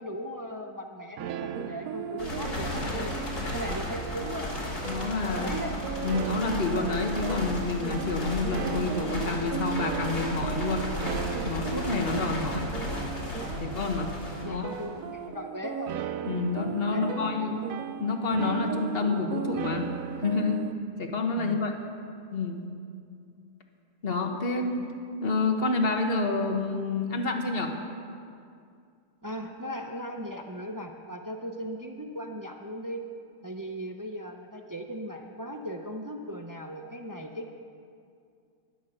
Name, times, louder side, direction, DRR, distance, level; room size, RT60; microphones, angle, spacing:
voice 1, 0.0-4.5 5.2-5.8 14.4-15.9 16.9-17.7 21.4-21.6 29.2-33.0 33.4-37.5, equal, 30° right, 3 dB, 0.3 m, -38 dB
sound 1, 1.2-20.7, right 9 dB, 70° right, 1.0 m, -36 dB
sound 2, 2.2-15.0, left 1 dB, 80° left, 3.3 m, -34 dB
voice 2, 4.9-5.6 6.0-10.9 11.4-12.7 13.6-14.1 14.4-14.7 16.2-17.6 18.0-19.9 20.2-20.6 21.0-21.7 22.3-22.6 24.0-24.8 25.2-27.8, left 3 dB, 40° left, 4 dB, 1.3 m, -28 dB
12.5 x 11.0 x 6.5 m, 2.4 s
omnidirectional pair, 1.6 m